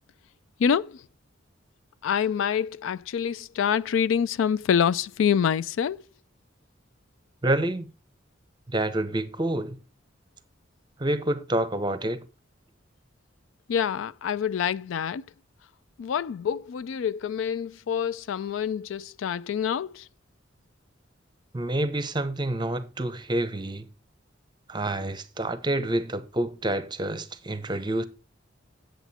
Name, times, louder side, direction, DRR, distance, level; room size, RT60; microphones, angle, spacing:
voice 1, 0.6-1.0 2.0-6.0 13.7-15.3 16.0-20.1, left 8 dB, 80° left, 0.3 m, -26 dB
voice 2, 7.4-7.9 8.7-9.8 11.0-12.2 21.5-23.9 24.7-28.0, right 1 dB, 25° right, 0.8 m, -28 dB
8.1 x 8.1 x 4.2 m
head